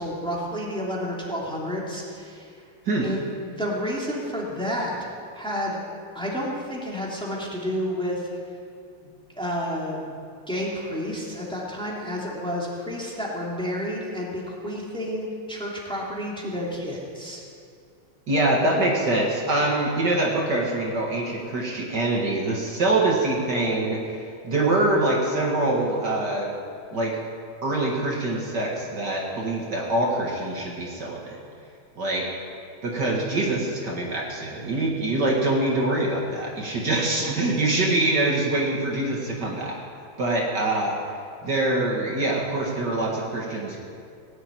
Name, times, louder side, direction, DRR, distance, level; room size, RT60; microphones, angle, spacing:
voice 1, 0.0-2.5 3.0-4.9 5.3-5.8 6.1-8.3 9.4-10.1 10.5-17.4, equal, ahead, -4 dB, 2.7 m, -30 dB
voice 2, 18.3-26.5 26.9-27.2 27.6-31.4 32.0-32.3 32.8-39.8 40.2-41.0 41.4-43.8, right 2 dB, 55° right, -2 dB, 2.2 m, -24 dB
18.0 x 8.0 x 9.2 m, 2.3 s
omnidirectional pair, 2.3 m